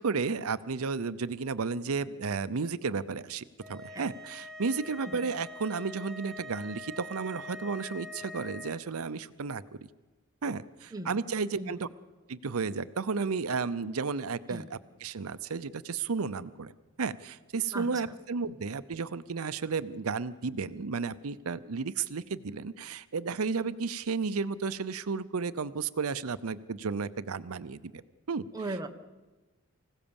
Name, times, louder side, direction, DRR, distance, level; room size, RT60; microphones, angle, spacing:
voice 1, 0.0-9.9 10.4-11.9 12.3-16.7 17.0-28.0 28.3-28.8, right 5 dB, 90° right, 15 dB, 0.7 m, -33 dB
sound 1, 3.6-8.8, left 1 dB, ahead, 1.4 m, -44 dB
voice 2, 28.5-28.9, right 2 dB, 15° right, 5 dB, 1.2 m, -37 dB
25.0 x 16.5 x 7.1 m, 1.2 s
head